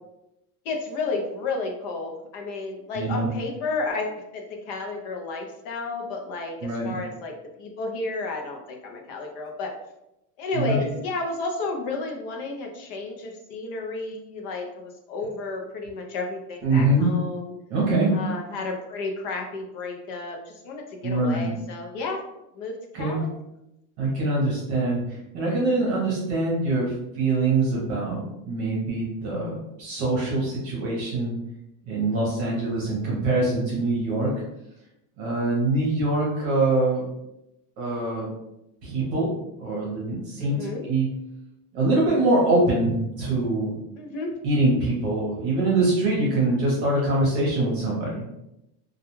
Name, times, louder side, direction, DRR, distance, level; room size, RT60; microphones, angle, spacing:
voice 1, 0.6-9.8 10.4-17.5 18.1-22.2 22.5-23.3 40.4-40.8 44.0-44.3, left 3 dB, 50° left, 2 dB, 0.6 m, -32 dB
voice 2, 2.9-3.3 6.6-7.0 10.5-10.8 16.6-17.1 17.7-18.1 21.0-21.5 22.9-23.2 24.0-31.3 31.8-34.3 35.2-37.1 37.8-38.3 38.8-39.3 39.6-41.1 41.7-43.8 44.4-48.2, right 2 dB, 45° right, -5 dB, 0.8 m, -24 dB
2.3 x 2.2 x 3.0 m, 0.87 s
cardioid pair, 175°, 42 cm